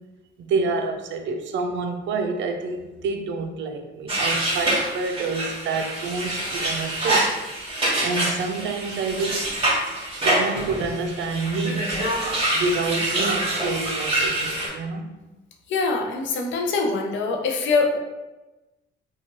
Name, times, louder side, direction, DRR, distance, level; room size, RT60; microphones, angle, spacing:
voice 1, 0.4-7.4 8.0-9.5 10.1-11.9 12.5-15.2, right 4 dB, 70° right, 5 dB, 0.4 m, -28 dB
sound 1, 4.1-14.7, right 1 dB, 25° right, 1.1 m, -26 dB
voice 2, 15.7-18.0, left 4 dB, 75° left, 2 dB, 0.5 m, -23 dB
2.9 x 2.3 x 2.8 m, 1.1 s
cardioid pair, 90°, 20 cm